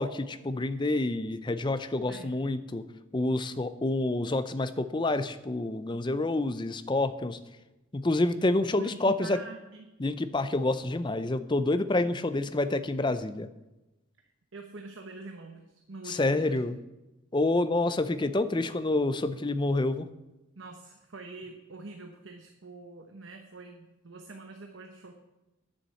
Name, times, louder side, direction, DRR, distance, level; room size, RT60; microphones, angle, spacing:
voice 1, 0.0-2.8 3.1-7.4 7.9-9.4 10.0-13.5 16.1-16.8 17.3-20.1, left 2 dB, 20° left, 12 dB, 0.5 m, -28 dB
voice 2, 8.8-9.9 14.5-16.6 20.6-25.1, right 3 dB, 60° right, 4 dB, 1.0 m, -45 dB
10.0 x 7.1 x 7.6 m, 1.0 s
head